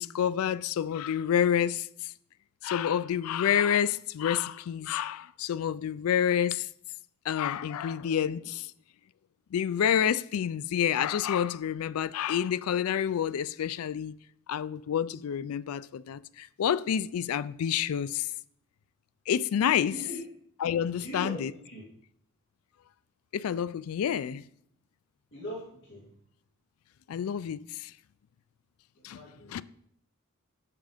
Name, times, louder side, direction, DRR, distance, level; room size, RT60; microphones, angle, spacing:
voice 1, 0.0-2.1 2.6-6.7 7.3-8.7 9.5-14.1 14.5-18.3 19.3-20.0 20.6-21.5 23.3-24.4 27.1-27.9 29.0-29.2 29.5-29.6, left 9 dB, 80° left, 0.3 m, -28 dB
voice 2, 19.9-20.2 21.0-21.8 25.3-26.1 28.9-29.6, equal, 55° left, 2.3 m, -41 dB
7.1 x 5.9 x 5.0 m
head